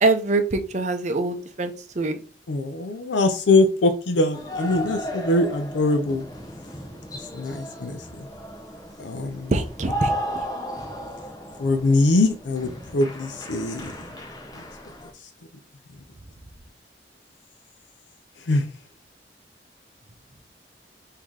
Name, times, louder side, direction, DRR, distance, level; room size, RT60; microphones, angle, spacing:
voice 1, 0.0-2.2 9.5-10.1, right 2 dB, 40° right, 0.6 m, -24 dB
voice 2, 2.5-6.2 7.3-8.3 9.0-9.5 11.6-13.9 18.5-18.7, left 2 dB, 90° left, 0.5 m, -22 dB
sound 1, 4.3-15.1, equal, 20° left, 0.8 m, -35 dB
3.8 x 2.8 x 4.7 m
head